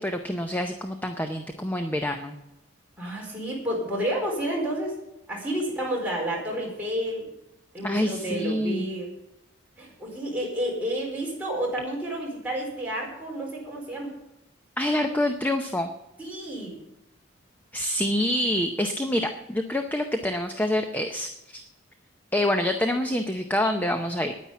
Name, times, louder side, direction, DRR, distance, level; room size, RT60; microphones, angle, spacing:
voice 1, 0.0-2.4 7.8-8.9 14.8-15.9 17.7-21.6 22.3-24.3, left 1 dB, 10° left, 6 dB, 0.6 m, -26 dB
voice 2, 3.0-4.9 5.3-7.3 7.7-9.1 9.8-14.1 16.2-16.8, right 1 dB, 10° right, -4 dB, 4.5 m, -30 dB
10.0 x 9.9 x 8.3 m, 0.89 s
head